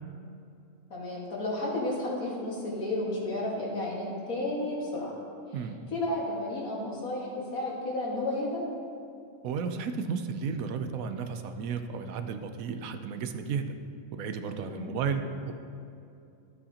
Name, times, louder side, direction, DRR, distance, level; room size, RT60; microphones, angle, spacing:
voice 1, 0.9-5.1 5.9-8.6 14.7-14.9, left 1 dB, 90° left, -4 dB, 2.3 m, -32 dB
voice 2, 9.4-13.7 14.1-15.5, right 6 dB, 80° right, 8 dB, 1.1 m, -33 dB
13.0 x 8.1 x 2.8 m, 2.6 s
omnidirectional pair, 1.5 m